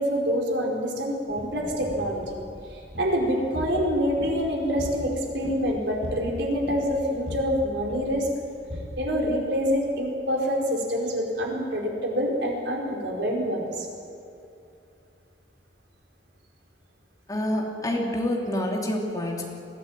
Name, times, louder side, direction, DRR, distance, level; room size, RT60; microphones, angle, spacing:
voice 1, 0.0-2.4 2.7-8.3 9.0-13.9, equal, 75° right, -1 dB, 4.8 m, -26 dB
sound 1, 1.3-9.9, equal, 40° right, 7.5 m, -40 dB
voice 2, 17.3-19.4, left 1 dB, 20° left, -1 dB, 3.0 m, -27 dB
22.0 x 16.5 x 9.0 m, 2.6 s
head